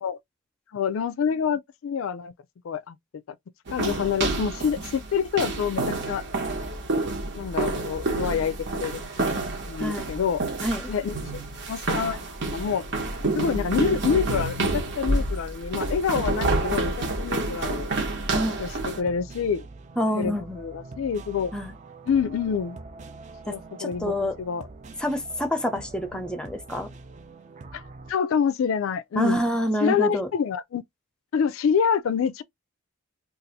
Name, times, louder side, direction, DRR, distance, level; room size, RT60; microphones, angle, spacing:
voice 1, 0.7-2.3 2.6-3.0 3.7-6.2 7.3-10.4 10.9-11.4 11.7-12.2 12.5-12.8 13.4-17.9 18.6-19.7 20.1-21.5 22.1-22.8 23.5-24.7 27.7-27.8 28.1-29.4 29.8-30.8 31.3-32.4, left 7 dB, 65° left, 0.4 m, -27 dB
sound 1, 3.7-19.0, right 2 dB, 60° right, 1.0 m, -28 dB
sound 2, 18.5-28.1, right 3 dB, 35° right, 0.5 m, -44 dB
voice 2, 20.0-20.6 21.5-21.7 23.5-23.6 23.8-24.3 25.0-26.9 29.2-30.3, equal, 5° left, 0.7 m, -27 dB
2.7 x 2.4 x 4.0 m
head